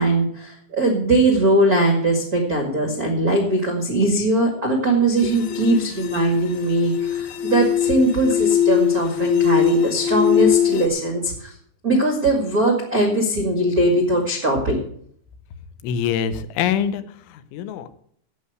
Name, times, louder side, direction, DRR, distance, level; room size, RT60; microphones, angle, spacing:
voice 1, 0.0-11.5 11.8-14.8, right 1 dB, 75° right, 2 dB, 0.8 m, -20 dB
sound 1, 5.2-10.9, left 10 dB, 70° left, 3.0 m, -21 dB
voice 2, 15.8-17.9, left 8 dB, 90° left, 11 dB, 3.3 m, -25 dB
11.0 x 8.0 x 8.0 m, 0.64 s
omnidirectional pair, 5.3 m